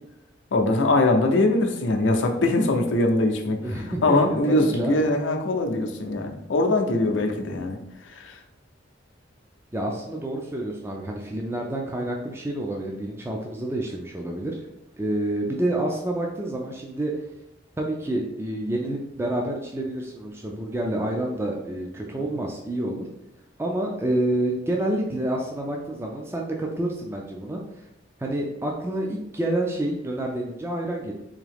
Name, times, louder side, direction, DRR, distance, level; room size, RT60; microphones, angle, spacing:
voice 1, 0.5-8.4 22.2-22.3, left 2 dB, 80° left, 3 dB, 0.6 m, -22 dB
voice 2, 3.6-5.1 9.7-14.6 15.0-17.1 17.8-23.1 23.6-27.6 28.2-31.1, right 1 dB, 15° right, 0 dB, 0.4 m, -28 dB
3.6 x 2.7 x 3.4 m, 0.87 s
head